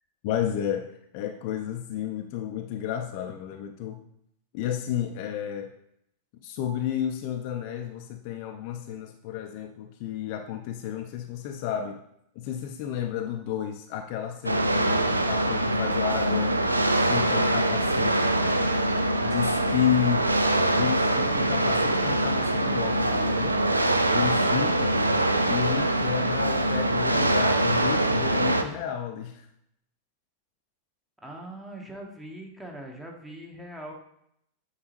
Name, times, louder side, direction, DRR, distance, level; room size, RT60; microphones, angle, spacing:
voice 1, 0.2-0.9 1.1-4.0 4.5-5.7 6.4-12.0 12.4-16.5 16.9-18.4 19.2-20.3 20.7-23.6 24.1-24.9 25.5-29.5, left 10 dB, 45° left, 5 dB, 0.5 m, -31 dB
sound 1, 14.5-28.6, right 1 dB, 80° right, 0.4 m, -24 dB
voice 2, 31.2-33.9, right 1 dB, 10° right, 1 dB, 1.1 m, -41 dB
8.6 x 3.8 x 3.0 m, 0.74 s
figure-of-eight pair, 90°, 0 cm